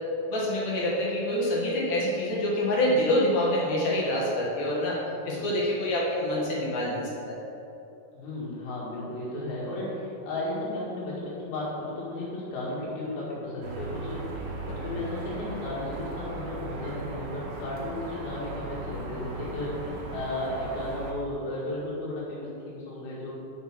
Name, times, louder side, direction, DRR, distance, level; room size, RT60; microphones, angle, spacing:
voice 1, 0.3-5.0 5.2-7.4, left 1 dB, 55° left, -5 dB, 2.4 m, -26 dB
voice 2, 5.2-5.6 8.1-14.3 14.6-23.3, left 1 dB, 70° left, -6 dB, 3.7 m, -34 dB
sound 1, 13.6-21.1, right 3 dB, 65° right, 2.5 m, -37 dB
6.9 x 6.0 x 5.9 m, 2.7 s
omnidirectional pair, 4.5 m